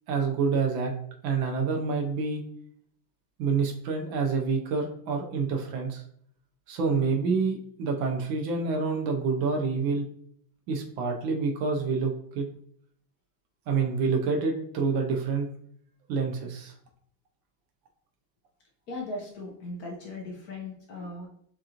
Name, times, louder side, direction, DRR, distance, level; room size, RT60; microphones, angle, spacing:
voice 1, 0.1-0.9 1.2-2.4 3.4-6.0 6.7-10.1 10.7-12.5 13.7-15.5 16.1-16.7, right 4 dB, 85° right, 2 dB, 1.5 m, -27 dB
voice 2, 18.9-21.3, left 2 dB, 60° left, -1 dB, 1.2 m, -38 dB
6.2 x 2.5 x 2.9 m, 0.64 s
omnidirectional pair, 2.1 m